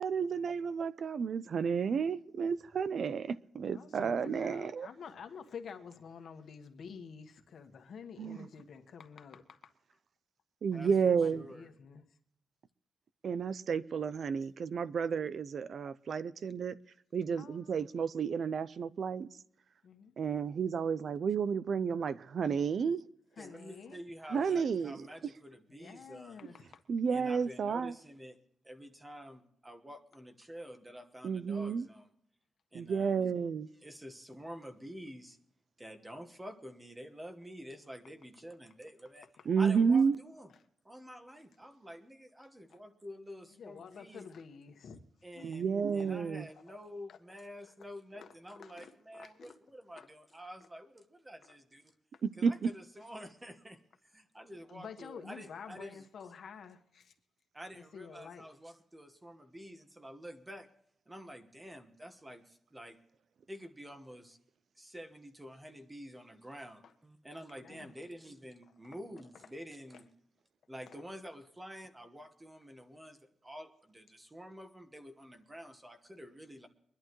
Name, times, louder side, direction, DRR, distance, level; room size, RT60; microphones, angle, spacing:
voice 1, 0.0-4.9 8.2-8.4 10.6-11.5 13.2-16.8 17.1-19.3 20.2-23.0 24.3-25.1 26.9-28.0 31.2-31.9 32.7-33.7 39.5-40.2 45.4-46.5 52.2-52.7, right 6 dB, 55° right, 0.5 m, -31 dB
voice 2, 3.7-9.6 10.8-12.0 17.4-17.7 19.8-20.1 23.4-24.0 25.7-26.8 39.4-39.5 40.5-40.6 42.4-42.8 43.5-45.0 45.3-45.5 45.9-46.1 46.5-46.8 47.1-47.2 47.6-47.9 48.1-49.6 49.9-50.1 51.5-51.6 54.7-57.1 57.7-58.5 66.8-66.9 67.6-67.9 68.6-68.7 69.3-69.4 69.9-70.0 70.9-71.0, left 6 dB, 65° left, 1.4 m, -50 dB
voice 3, 10.7-11.7 23.4-26.4 27.1-28.4 28.6-32.1 32.7-33.3 33.8-35.4 35.8-39.3 39.6-40.5 40.8-44.3 45.2-51.9 52.4-56.0 57.5-60.7 61.1-63.0 63.5-64.4 64.8-70.0 70.7-76.7, equal, 10° right, 1.3 m, -49 dB
23.5 x 11.5 x 3.1 m
wide cardioid pair, 145°, 0 cm